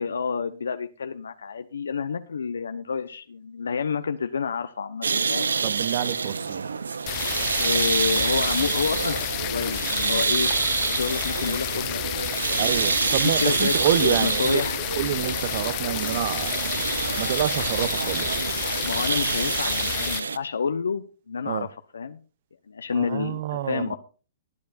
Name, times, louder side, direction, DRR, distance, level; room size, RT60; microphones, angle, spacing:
voice 1, 0.0-5.5 7.6-10.5 10.9-12.0 12.5-12.7 13.0-13.1 13.4-14.8 18.8-21.7 21.9-22.2 22.7-24.0, left 6 dB, 80° left, 0.9 m, -29 dB
sound 1, 5.0-20.4, right 5 dB, 85° right, 0.7 m, -27 dB
voice 2, 5.6-6.7 12.6-14.6 15.0-16.8 17.2-18.3 21.5-21.7 22.9-24.0, right 12 dB, 50° right, 0.9 m, -28 dB
sound 2, 7.1-20.2, left 22 dB, 40° left, 0.5 m, -31 dB
20.0 x 9.6 x 2.6 m
hypercardioid pair, 125°, 0 cm